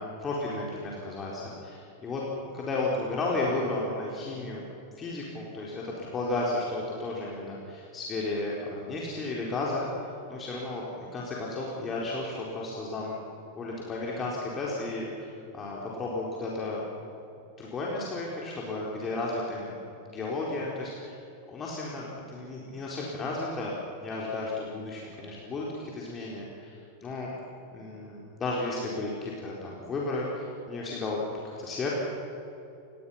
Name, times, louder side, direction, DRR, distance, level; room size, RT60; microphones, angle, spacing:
voice 1, 0.0-2.2 2.5-4.6 5.0-9.9 10.3-13.2 13.6-16.8 17.6-21.2 21.5-23.7 24.0-27.3 27.7-31.2 31.6-31.9, left 2 dB, 20° left, -4 dB, 4.3 m, -33 dB
28.5 x 21.0 x 5.8 m, 2.9 s
figure-of-eight pair, 90°, 0 cm